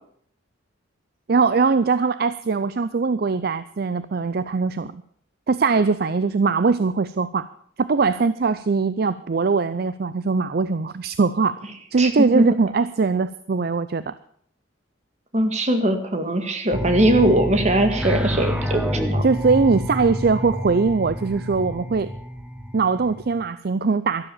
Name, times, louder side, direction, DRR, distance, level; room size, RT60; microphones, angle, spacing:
voice 1, 1.3-5.0 5.5-7.5 7.8-11.5 11.9-14.1 19.2-22.1 22.7-24.3, right 4 dB, 55° right, 15 dB, 0.5 m, -21 dB
voice 2, 12.0-12.4 15.3-19.3, right 1 dB, 35° right, 7 dB, 1.9 m, -20 dB
sound 1, 16.7-23.4, equal, 5° right, 1.2 m, -28 dB
12.5 x 12.0 x 7.0 m, 0.63 s
head